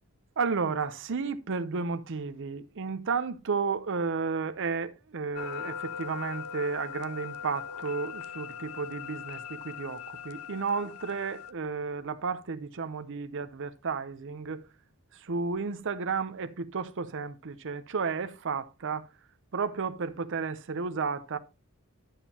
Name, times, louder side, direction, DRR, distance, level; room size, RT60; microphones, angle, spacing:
voice 1, 0.4-14.6 15.1-19.1 19.5-21.4, right 5 dB, 60° right, 0.6 m, -32 dB
sound 1, 5.3-11.5, left 8 dB, 80° left, 0.5 m, -40 dB
11.5 x 7.2 x 2.8 m
head